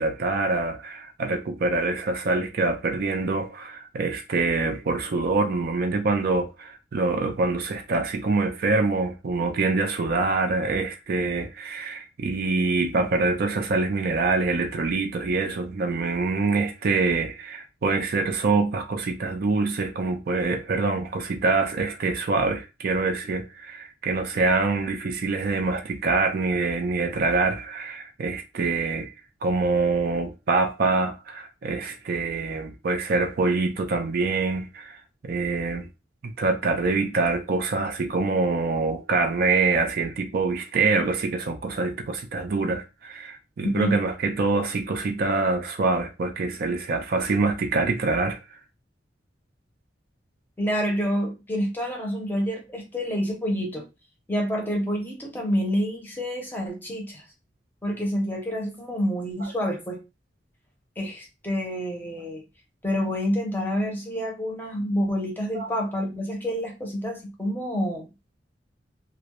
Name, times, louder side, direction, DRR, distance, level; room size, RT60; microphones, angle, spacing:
voice 1, 0.0-29.1 29.4-35.0 35.2-35.9 36.2-48.4 65.5-65.7, right 3 dB, 55° right, 0.4 m, -25 dB
voice 2, 43.6-44.0 50.6-53.8 54.3-57.2 57.8-60.0 61.0-62.4 62.8-68.1, equal, 10° left, 0.6 m, -28 dB
2.2 x 2.0 x 2.9 m
head